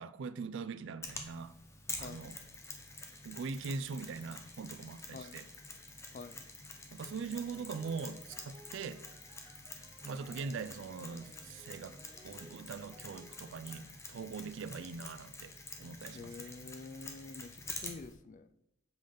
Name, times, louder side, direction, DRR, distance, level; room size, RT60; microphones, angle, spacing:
voice 1, 0.0-1.5 2.0-2.4 3.2-5.5 6.9-9.0 10.0-16.3, right 5 dB, 60° right, 0.4 m, -42 dB
Mechanisms, 1.0-18.1, left 3 dB, 15° left, 0.7 m, -48 dB
voice 2, 2.0-2.3 5.1-5.4 6.1-6.4 16.1-18.5, left 4 dB, 40° left, 0.3 m, -48 dB
sound 1, 7.0-13.9, right 1 dB, 20° right, 0.8 m, -60 dB
7.0 x 5.2 x 3.8 m
head